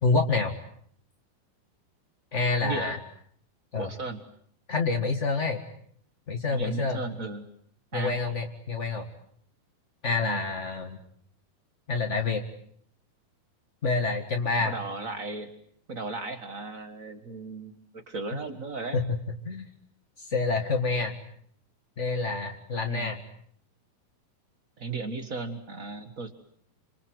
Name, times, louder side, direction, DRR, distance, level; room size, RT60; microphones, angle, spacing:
voice 1, 0.0-0.5 2.3-3.0 3.7-3.9 4.7-5.6 6.3-7.0 7.9-9.1 10.0-11.0 11.9-12.4 13.8-14.7 18.9-19.7 20.2-21.1 22.0-23.2, left 4 dB, 40° left, 3 dB, 1.0 m, -27 dB
voice 2, 2.6-3.0 3.7-4.2 6.5-7.5 7.9-8.2 10.2-10.4 14.6-15.5 15.9-19.0 22.9-23.1 24.8-26.3, right 3 dB, 85° right, 8 dB, 0.7 m, -35 dB
28.0 x 26.5 x 7.9 m, 0.64 s
omnidirectional pair, 4.3 m